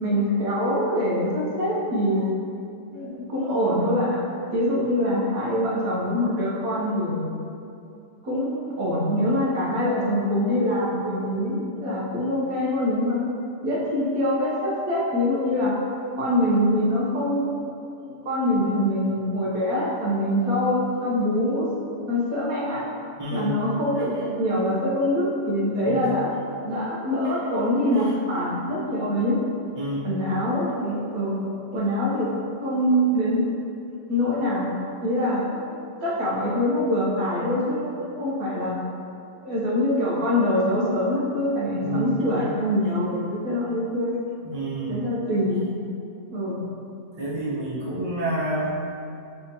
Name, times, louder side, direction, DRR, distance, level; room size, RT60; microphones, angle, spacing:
voice 1, 0.0-2.2 2.9-4.2 4.5-7.3 8.2-13.2 13.6-15.8 16.2-17.7 18.0-21.7 22.1-22.8 23.3-26.3 26.6-29.4 30.0-31.4 31.7-32.3 32.6-33.5 34.1-34.7 35.0-35.6 36.0-38.8 39.4-44.1 44.9-45.7 46.3-46.6, left 1 dB, 80° right, -6 dB, 1.4 m, -24 dB
voice 2, 23.2-23.5 25.9-26.1 27.9-28.1 29.8-30.1 41.8-42.1 44.4-45.0 47.2-48.7, right 1 dB, 20° right, -8 dB, 0.8 m, -29 dB
5.3 x 3.4 x 2.8 m, 2.6 s
omnidirectional pair, 1.5 m